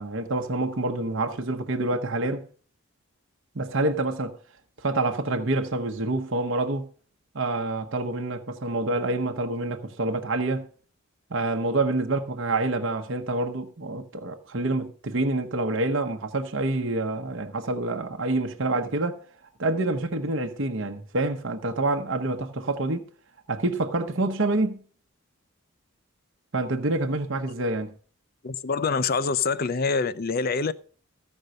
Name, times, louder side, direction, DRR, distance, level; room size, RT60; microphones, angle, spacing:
voice 1, 0.0-2.4 3.5-4.4 4.8-6.9 7.3-10.7 11.3-19.2 19.6-23.0 23.5-24.8 26.5-27.9, right 2 dB, 55° right, 0.9 m, -27 dB
voice 2, 28.4-30.7, left 4 dB, 40° left, 0.5 m, -25 dB
14.5 x 5.4 x 6.4 m
head